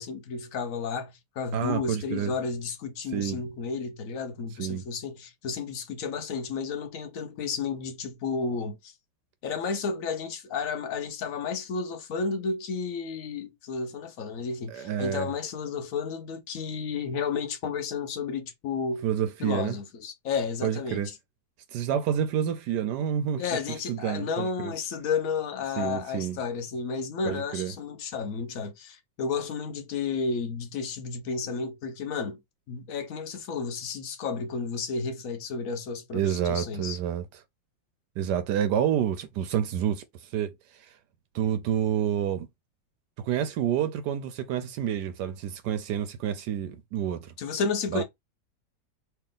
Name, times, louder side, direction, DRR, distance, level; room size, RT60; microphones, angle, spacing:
voice 1, 0.0-8.9 9.4-19.1 19.4-21.1 23.4-32.4 32.7-37.0 47.4-48.0, left 5 dB, 55° left, 1.1 m, -32 dB
voice 2, 1.5-2.3 3.1-3.4 4.6-4.8 14.7-15.3 19.0-19.8 20.6-21.1 21.7-24.7 25.8-26.4 27.2-27.7 36.1-37.3 38.2-40.9 41.3-42.5 43.2-47.3 47.9-48.0, right 9 dB, 75° right, 1.1 m, -29 dB
3.3 x 2.8 x 3.6 m
omnidirectional pair, 2.1 m